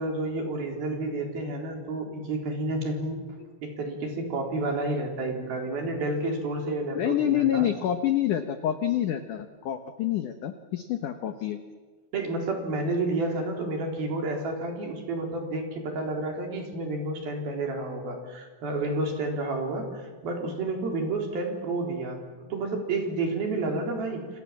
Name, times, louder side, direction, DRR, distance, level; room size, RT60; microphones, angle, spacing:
voice 1, 0.0-3.2 3.6-7.7 12.1-19.9 20.2-22.2 22.5-24.2, right 2 dB, 55° right, 2 dB, 5.5 m, -30 dB
voice 2, 7.0-11.6, left 11 dB, 80° left, 8 dB, 1.8 m, -27 dB
28.5 x 28.0 x 7.5 m, 1.4 s
omnidirectional pair, 5.4 m